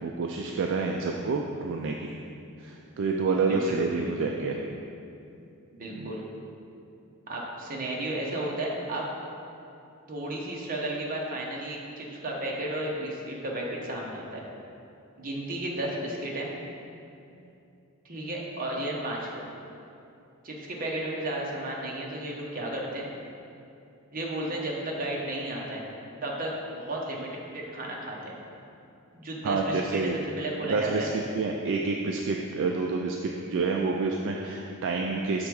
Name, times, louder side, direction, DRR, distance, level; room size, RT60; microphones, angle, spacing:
voice 1, 0.0-2.1 2.6-4.6 5.9-6.1 29.4-30.2 30.7-31.1 31.3-35.5, right 4 dB, 55° right, 1 dB, 0.3 m, -28 dB
voice 2, 3.4-4.3 5.8-6.3 7.3-9.1 10.1-14.4 15.2-16.5 18.0-19.4 20.4-23.1 24.1-25.8 26.2-28.4 29.1-31.1, right 1 dB, 40° right, -2 dB, 0.9 m, -33 dB
6.4 x 3.4 x 4.7 m, 2.6 s
head